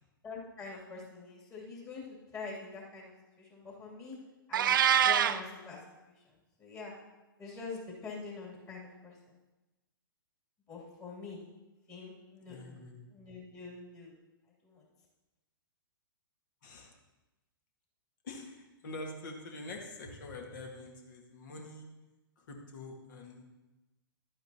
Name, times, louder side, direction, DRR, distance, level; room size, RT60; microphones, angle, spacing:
voice 1, 0.2-4.2 4.5-5.8 6.0-6.1 6.6-6.9 7.4-9.3 10.7-11.4 11.9-12.8 13.1-14.1 14.6-14.8, left 4 dB, 25° left, -4 dB, 2.7 m, -45 dB
Meow, 4.5-5.4, right 9 dB, 65° right, 0.4 m, -24 dB
voice 2, 12.5-13.1 16.6-16.9 18.2-21.9 22.4-23.4, left 2 dB, 60° left, 2 dB, 1.8 m, -45 dB
11.5 x 8.8 x 2.9 m, 1.1 s
figure-of-eight pair, 115°, 12 cm